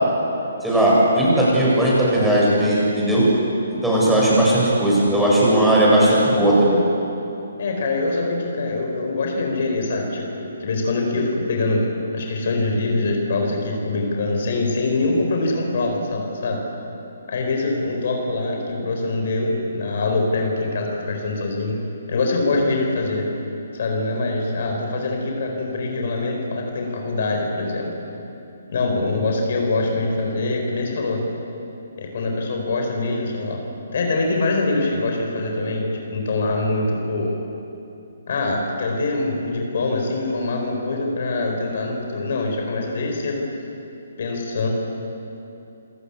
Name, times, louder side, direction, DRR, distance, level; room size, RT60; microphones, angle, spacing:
voice 1, 0.6-3.3 3.8-6.8, right 1 dB, 5° right, -7 dB, 8.0 m, -17 dB
voice 2, 7.6-11.9 12.1-16.6 17.3-21.8 22.1-23.3 23.7-27.9 28.7-31.2 32.0-33.6 33.9-37.3 38.3-43.4 44.2-44.7, left 2 dB, 55° left, 1 dB, 4.5 m, -24 dB
28.0 x 17.0 x 8.5 m, 2.9 s
figure-of-eight pair, 135°, 0 cm